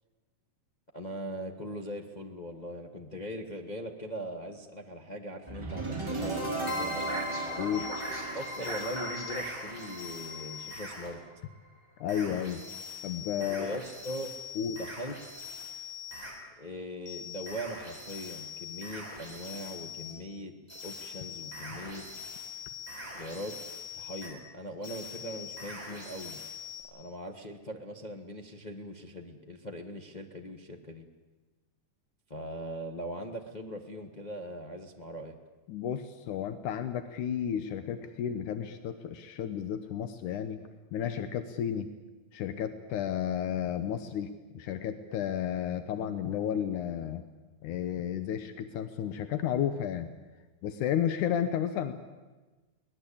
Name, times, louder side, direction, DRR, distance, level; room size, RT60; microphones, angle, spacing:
voice 1, 0.9-7.0 8.3-11.2 13.5-14.3 14.8-15.1 16.6-20.5 20.8-22.0 23.1-23.5 23.9-26.4 26.9-31.1 32.3-35.4, equal, 50° left, 2 dB, 0.5 m, -40 dB
sound 1, 5.5-11.5, right 1 dB, 10° right, 3.5 m, -35 dB
voice 2, 7.6-7.9 12.0-12.6 13.0-13.8 14.6-14.8 35.7-40.6 40.9-41.9 42.3-47.2 47.6-50.1 50.6-51.9, left 9 dB, 85° left, 10 dB, 2.5 m, -32 dB
sound 2, 7.7-11.1 12.1-16.4 17.1-20.2 20.7-24.3 24.8-26.8, left 4 dB, 10° left, 6.7 m, -43 dB
24.0 x 19.5 x 8.5 m, 1.2 s
omnidirectional pair, 3.5 m